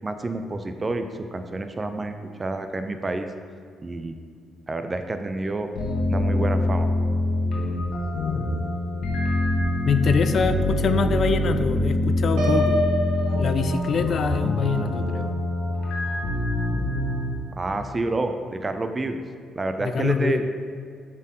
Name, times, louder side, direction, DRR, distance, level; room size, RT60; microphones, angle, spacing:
voice 1, 0.0-1.1 1.3-2.1 2.4-3.3 3.8-4.1 4.7-5.7 6.1-6.9 17.6-19.2 19.6-20.4, right 2 dB, 25° right, 7 dB, 0.5 m, -28 dB
sound 1, 5.8-17.3, left 1 dB, 80° left, 1.2 m, -25 dB
voice 2, 8.3-8.7 9.9-12.8 13.3-15.3 19.8-20.5, left 5 dB, 55° left, 9 dB, 0.3 m, -24 dB
Piano, 12.4-14.3, right 1 dB, 85° right, 1.0 m, -27 dB
7.0 x 4.4 x 3.7 m, 2.1 s
cardioid pair, 90°, 0 cm